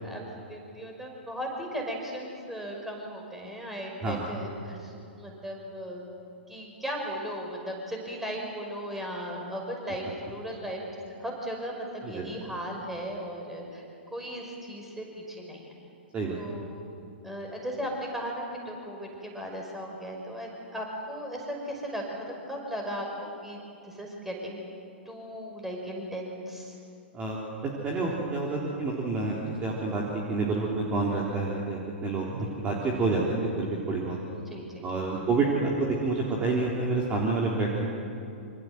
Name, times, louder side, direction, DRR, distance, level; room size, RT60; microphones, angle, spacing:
voice 1, 0.5-6.1 6.5-10.8 11.1-13.8 14.1-15.7 16.3-16.8 17.2-24.6 25.1-26.7 32.4-32.6 34.3-34.6 35.1-35.4, equal, 5° right, 0 dB, 5.6 m, -37 dB
voice 2, 27.1-34.2 34.8-37.9, right 3 dB, 20° right, -2 dB, 3.5 m, -28 dB
26.5 x 25.5 x 7.9 m, 2.6 s
figure-of-eight pair, 110°, 6 cm